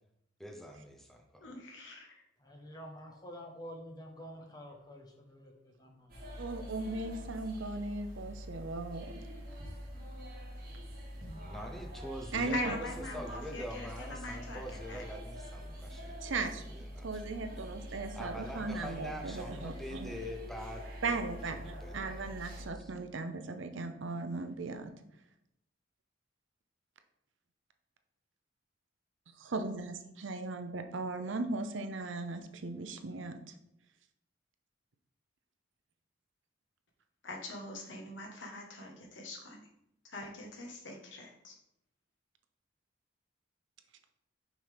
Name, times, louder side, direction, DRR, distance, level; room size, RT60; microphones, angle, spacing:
voice 1, 0.4-1.5 11.4-12.9 13.1-17.2 17.5-21.2 21.5-22.3 22.7-22.9, equal, ahead, 2 dB, 0.7 m, -45 dB
voice 2, 1.4-2.2 4.4-4.5 12.5-15.2 37.2-39.6 40.0-41.6, left 2 dB, 70° left, 2 dB, 1.3 m, -43 dB
voice 3, 2.4-6.3, equal, 20° left, 2 dB, 1.0 m, -49 dB
sound 1, 6.1-22.7, equal, 50° right, 1.6 m, -45 dB
voice 4, 6.4-9.2 12.3-12.7 16.2-16.6 17.0-20.2 21.0-24.9 29.5-33.3, right 3 dB, 70° right, 8 dB, 0.6 m, -37 dB
6.2 x 5.6 x 3.4 m, 0.80 s
head